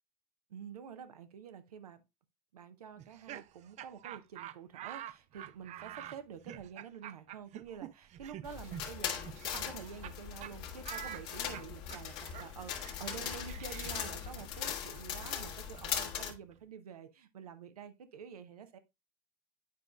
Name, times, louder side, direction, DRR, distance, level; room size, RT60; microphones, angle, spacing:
voice 1, 0.5-2.0 2.5-18.8, right 7 dB, 90° right, 0.7 m, -48 dB
Laughter, 3.0-10.1 10.4-10.5 10.8-16.6, right 12 dB, 40° right, 0.4 m, -48 dB
sound 1, 8.4-16.3, left 8 dB, 60° left, 1.4 m, -40 dB
9.3 x 4.9 x 2.3 m
hypercardioid pair, 75°, 19 cm